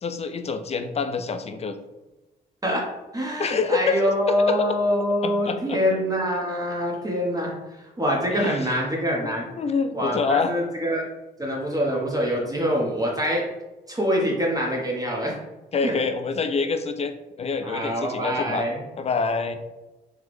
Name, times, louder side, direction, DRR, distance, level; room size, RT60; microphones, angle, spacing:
voice 1, 0.0-1.8 3.4-4.6 5.2-5.8 8.4-8.6 9.6-10.5 15.7-18.7 19.0-19.5, left 4 dB, 30° left, 9 dB, 0.4 m, -26 dB
voice 2, 3.1-9.5 9.9-11.0 11.4-13.5 13.9-15.4 15.8-15.9 17.6-18.8, equal, 15° right, -3 dB, 0.9 m, -25 dB
3.5 x 2.0 x 3.1 m, 1.1 s
supercardioid pair, 55°, 21 cm